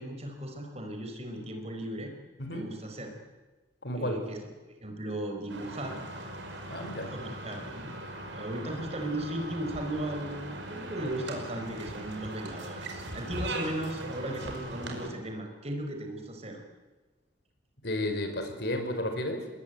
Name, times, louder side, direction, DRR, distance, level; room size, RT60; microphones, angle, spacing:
voice 1, 0.0-2.1 2.5-3.1 3.9-4.4 4.8-6.0 7.1-7.9 8.3-16.6, right 1 dB, 35° right, 3 dB, 4.7 m, -36 dB
voice 2, 2.4-2.7 3.8-4.2 6.7-7.1 17.8-19.5, left 1 dB, 60° left, 6 dB, 5.1 m, -32 dB
sound 1, 5.5-15.1, right 1 dB, 70° right, 5.3 m, -40 dB
28.5 x 21.5 x 9.3 m, 1.2 s
head